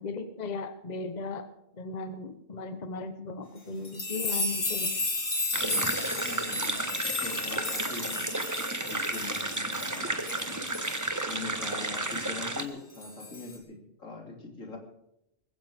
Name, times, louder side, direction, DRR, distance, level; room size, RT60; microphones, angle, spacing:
voice 1, 0.0-1.5 1.7-5.0, left 3 dB, 35° left, 9 dB, 1.1 m, -37 dB
sound 1, 3.8-11.7 12.0-12.2 13.0-13.6, left 2 dB, 70° left, 2.9 m, -34 dB
sound 2, 5.5-12.6, right 2 dB, 15° right, 1.1 m, -32 dB
voice 2, 5.6-6.9 7.2-8.3 8.8-10.2 11.3-14.8, left 3 dB, 85° left, 1 dB, 3.5 m, -42 dB
20.5 x 15.5 x 3.6 m, 0.81 s
omnidirectional pair, 1.3 m